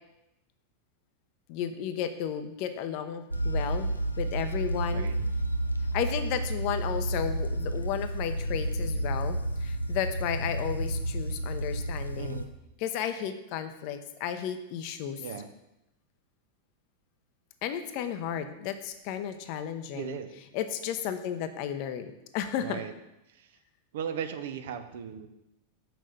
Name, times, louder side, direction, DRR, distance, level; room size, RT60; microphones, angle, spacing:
voice 1, 1.5-3.9 4.2-5.1 5.9-12.4 12.8-15.2 17.6-20.2 20.5-22.8, left 9 dB, 45° left, 9 dB, 0.8 m, -33 dB
sound 1, 3.3-12.5, right 1 dB, 85° left, 0.6 m, -31 dB
voice 2, 4.9-5.3 12.2-12.5 15.2-15.5 19.9-20.3 22.6-22.9 23.3-23.6 23.9-25.3, right 8 dB, 55° right, 8 dB, 0.8 m, -37 dB
6.2 x 6.0 x 6.8 m, 0.90 s
figure-of-eight pair, 90°, 0 cm